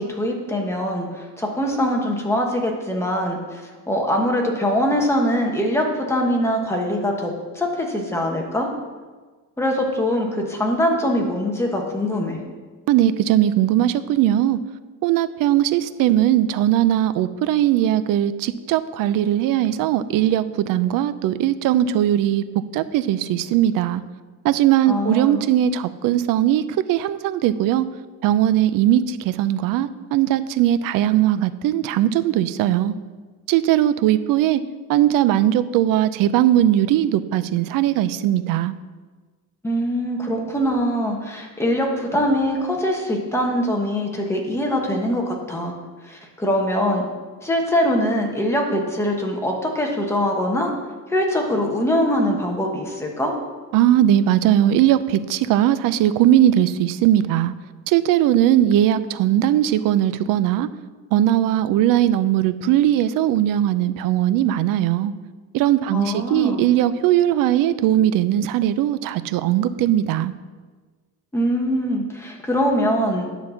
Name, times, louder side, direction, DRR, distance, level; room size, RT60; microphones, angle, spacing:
voice 1, 0.0-8.7 9.6-12.4 24.9-25.4 39.6-45.7 46.0-47.1 47.4-50.7 51.1-53.3 65.9-66.6 71.3-73.3, equal, 10° left, 0 dB, 1.3 m, -23 dB
voice 2, 12.9-14.6 15.0-22.4 22.7-24.0 24.4-27.9 28.2-32.9 33.5-34.6 34.9-38.7 53.7-57.5 57.9-60.7 61.1-65.1 65.5-70.3, right 12 dB, 75° right, 14 dB, 0.6 m, -19 dB
9.8 x 4.1 x 7.0 m, 1.4 s
cardioid pair, 155°, 33 cm